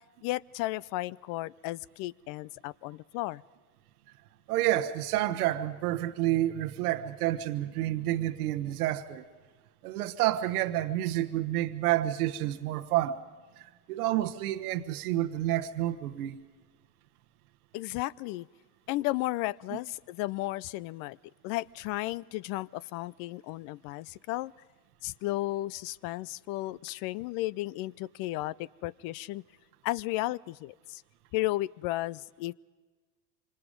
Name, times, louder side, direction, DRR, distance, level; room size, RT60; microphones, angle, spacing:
voice 1, 0.2-3.4 17.7-18.5 18.9-21.2 21.4-24.5 25.0-29.4 29.8-31.0 31.3-32.5, left 18 dB, 50° left, 0.6 m, -34 dB
voice 2, 4.5-9.2 9.8-13.2 13.6-16.4, right 14 dB, 75° right, 1.2 m, -29 dB
26.0 x 26.0 x 5.3 m
hypercardioid pair, 90°, 45 cm